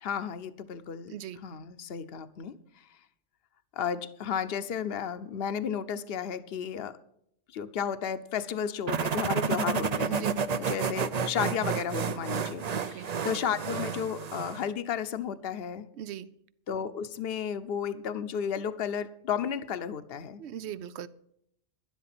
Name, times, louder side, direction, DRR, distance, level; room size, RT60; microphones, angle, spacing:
voice 1, 0.0-1.1 1.4-2.6 3.8-7.0 7.5-10.3 10.6-15.9 16.7-20.4, left 7 dB, 60° left, 12 dB, 1.0 m, -33 dB
sound 1, 8.9-14.7, right 6 dB, 45° right, 0.6 m, -31 dB
voice 2, 10.1-10.4 12.7-13.1 16.0-16.3 20.4-21.1, right 9 dB, 80° right, 17 dB, 0.9 m, -39 dB
12.0 x 11.0 x 6.0 m, 0.72 s
omnidirectional pair, 1.1 m